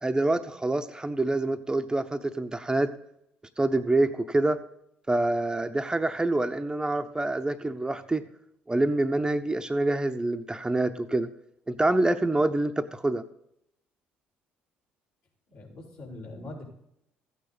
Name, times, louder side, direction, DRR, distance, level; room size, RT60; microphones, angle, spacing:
voice 1, 0.0-2.9 3.6-4.6 5.1-8.3 8.7-11.3 11.7-13.2, right 2 dB, 15° right, 8 dB, 0.8 m, -26 dB
voice 2, 15.5-16.7, left 2 dB, 65° left, -4 dB, 4.8 m, -42 dB
14.5 x 9.2 x 4.1 m, 0.76 s
hypercardioid pair, 55°, 5 cm